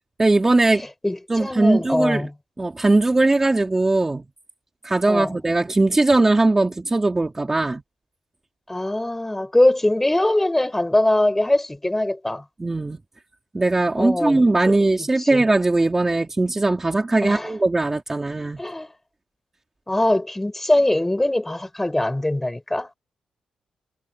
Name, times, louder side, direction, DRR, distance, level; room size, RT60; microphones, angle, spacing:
voice 1, 0.2-0.9 1.3-2.3 2.6-4.2 4.8-7.8 12.6-13.0 13.5-18.6, right 2 dB, 20° right, 2.7 m, -19 dB
voice 2, 1.0-2.3 5.1-5.3 8.7-12.4 13.9-14.8 15.2-15.5 17.2-17.5 18.6-18.9 19.9-23.0, left 1 dB, 10° left, 5.1 m, -22 dB
cardioid pair, 105°, 2 cm